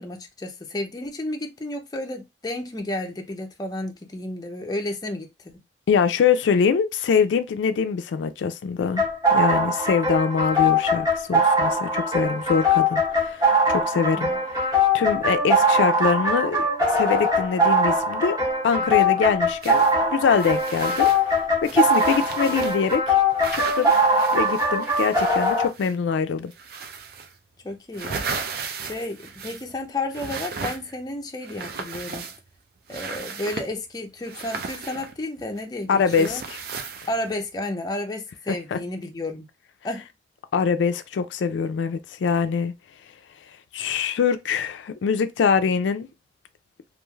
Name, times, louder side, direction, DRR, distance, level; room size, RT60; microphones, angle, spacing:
voice 1, 0.0-5.5 14.2-14.4 27.6-28.3 28.8-32.2 32.9-36.4 37.1-39.5 39.8-40.1, left 1 dB, 20° left, 0.4 m, -32 dB
voice 2, 5.9-18.4 18.6-23.2 23.5-23.9 24.3-26.5 35.9-36.6 38.5-38.8 40.5-42.7 43.7-46.1, left 6 dB, 85° left, 0.3 m, -24 dB
sound 1, 9.0-25.7, left 1 dB, 20° right, 1.0 m, -21 dB
sound 2, 19.6-19.9 20.3-23.0 23.4-26.1 26.5-27.4 27.7-29.8 30.1-31.0 31.4-32.6 32.9-33.7 34.2-35.6 36.0-37.4, right 5 dB, 55° right, 0.4 m, -35 dB
3.1 x 2.4 x 2.3 m
head